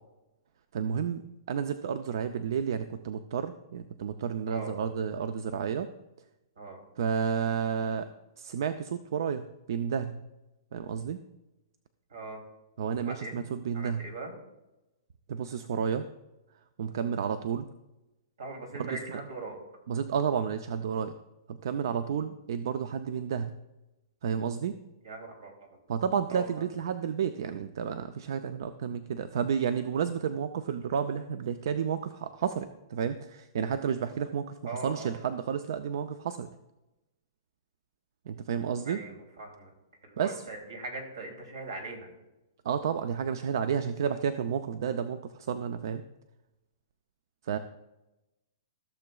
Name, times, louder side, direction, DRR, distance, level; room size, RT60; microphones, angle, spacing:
voice 1, 0.7-1.2 1.5-5.9 7.0-8.1 8.4-10.2 10.7-11.2 12.8-14.0 15.3-16.1 16.8-17.7 18.8-19.2 19.9-21.1 21.5-23.6 24.2-24.7 25.9-36.5 38.3-39.0 40.2-40.3 42.6-46.0 47.4-47.6, right 7 dB, 65° right, 11 dB, 0.5 m, -31 dB
voice 2, 4.5-4.8 6.5-6.8 12.1-12.4 13.0-13.4 13.7-14.3 18.4-19.6 25.0-25.7 26.3-26.6 34.7-35.2 38.8-39.7 40.0-42.1, right 3 dB, 85° right, 1 dB, 2.9 m, -40 dB
15.0 x 6.8 x 2.3 m, 0.99 s
hypercardioid pair, 145°, 2 cm